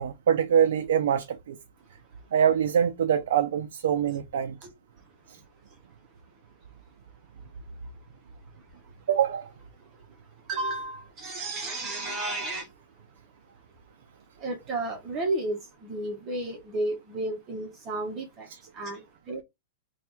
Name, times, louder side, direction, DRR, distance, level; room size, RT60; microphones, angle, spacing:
voice 1, 0.0-1.6 2.3-4.6 5.3-5.4 9.1-9.5, right 8 dB, 75° right, 0.5 m, -24 dB
voice 2, 10.5-12.7 14.4-18.5 18.7-19.4, right 2 dB, 20° right, 0.9 m, -32 dB
3.3 x 2.3 x 4.4 m
supercardioid pair, 165°, 0 cm